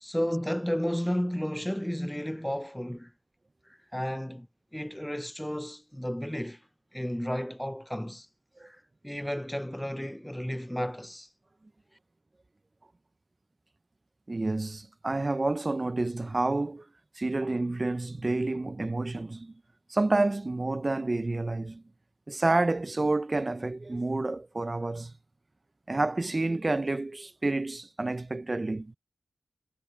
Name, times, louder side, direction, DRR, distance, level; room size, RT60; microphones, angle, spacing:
voice 1, 0.0-3.1 3.9-4.5 4.7-6.6 6.9-8.3 8.6-8.8 9.0-11.3, equal, 5° left, 0.7 m, -32 dB
voice 2, 14.3-16.8 17.2-19.5 19.9-21.8 22.3-25.1 25.9-28.9, right 2 dB, 35° right, 0.7 m, -29 dB
cardioid pair, 45°, 0 cm